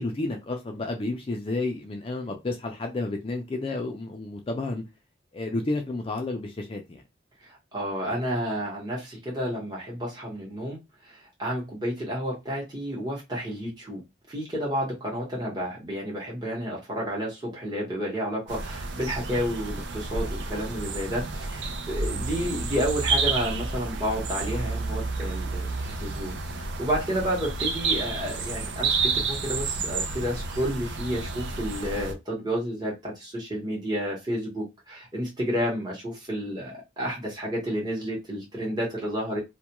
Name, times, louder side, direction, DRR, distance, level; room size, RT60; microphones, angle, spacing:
voice 1, 0.0-4.8 5.3-7.0 22.0-22.5, left 2 dB, 30° left, 0.3 m, -31 dB
voice 2, 7.4-14.0 14.3-39.4, equal, 20° right, 0.9 m, -31 dB
sound 1, 18.5-32.1, right 4 dB, 70° right, 0.4 m, -30 dB
2.3 x 2.2 x 2.8 m
head